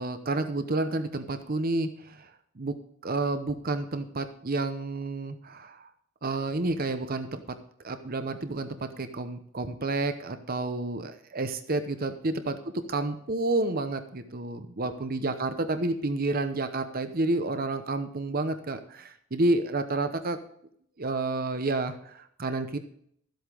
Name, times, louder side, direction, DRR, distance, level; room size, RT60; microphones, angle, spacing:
voice 1, 0.0-1.9 2.6-2.7 3.0-5.9 6.2-7.6 7.8-12.6 12.9-20.4 21.0-22.8, right 2 dB, 45° right, 9 dB, 0.8 m, -30 dB
13.0 x 7.9 x 5.0 m, 0.66 s
head